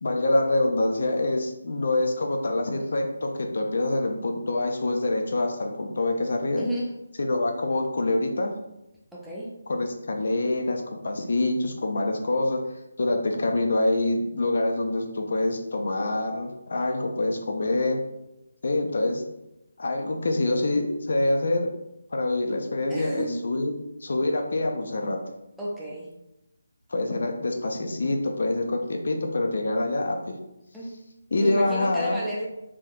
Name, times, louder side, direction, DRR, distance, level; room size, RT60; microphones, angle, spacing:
voice 1, 0.0-6.6 7.2-8.5 9.7-12.6 13.0-18.0 18.6-19.2 19.8-21.7 22.1-23.7 24.0-25.2 26.9-30.2 31.3-32.2, left 2 dB, 55° left, 3 dB, 0.4 m, -25 dB
voice 2, 6.6-6.9 9.1-9.5 22.9-23.4 25.6-26.1 30.7-31.0 31.4-32.5, right 1 dB, ahead, -7 dB, 0.5 m, -32 dB
3.4 x 2.7 x 2.3 m, 0.90 s
figure-of-eight pair, 150°, 0 cm